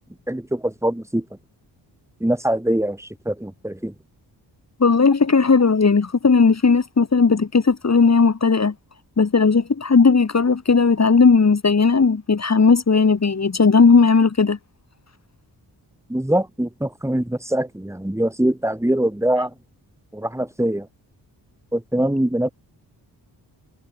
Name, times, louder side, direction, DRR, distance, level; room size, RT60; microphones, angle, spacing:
voice 1, 0.3-1.3 2.2-3.9 16.1-19.5 20.1-20.9 21.7-22.5, right 1 dB, 5° right, 7.0 m, -23 dB
voice 2, 4.8-8.7 9.2-14.6, left 4 dB, 40° left, 3.4 m, -16 dB
cardioid pair, 85°, 42 cm